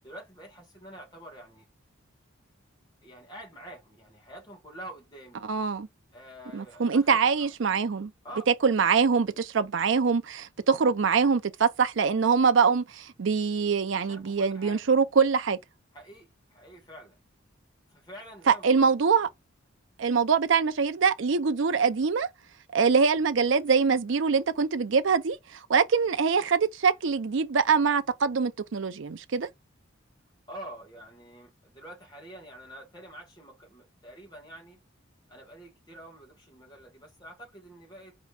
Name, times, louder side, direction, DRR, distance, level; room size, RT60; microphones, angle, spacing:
voice 1, 0.0-1.7 3.0-5.5 6.1-7.5 8.2-8.5 13.9-14.8 15.9-17.2 17.9-18.9 30.5-34.8 35.3-38.2, right 1 dB, 20° left, 1.4 m, -47 dB
voice 2, 5.4-5.9 6.5-8.1 8.6-15.6 18.5-19.3 20.0-22.3 22.7-29.5, right 5 dB, 65° right, 0.5 m, -24 dB
4.0 x 3.0 x 3.3 m
head